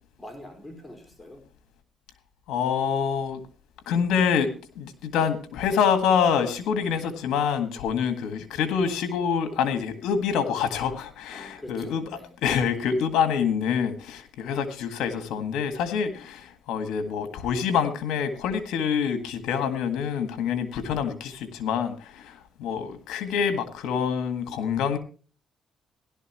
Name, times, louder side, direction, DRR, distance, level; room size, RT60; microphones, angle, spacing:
voice 1, 0.2-1.4 11.3-12.3, left 1 dB, 15° left, 2 dB, 5.0 m, -44 dB
voice 2, 2.5-3.5 3.9-12.0 12.4-25.0, left 7 dB, 90° left, 9 dB, 1.7 m, -26 dB
16.5 x 12.0 x 3.0 m, 0.39 s
cardioid pair, 90°, 0 cm